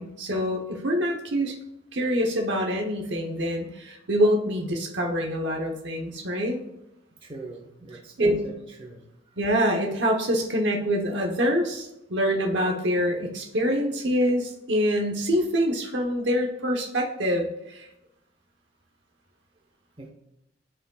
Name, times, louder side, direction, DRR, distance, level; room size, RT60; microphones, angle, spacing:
voice 1, 0.0-1.5 1.9-6.6 8.2-8.4 9.4-17.9, equal, 70° right, 1 dB, 1.1 m, -25 dB
voice 2, 7.2-9.0 20.0-20.1, right 3 dB, 30° right, 1 dB, 1.0 m, -42 dB
12.0 x 4.9 x 2.4 m, 0.88 s
head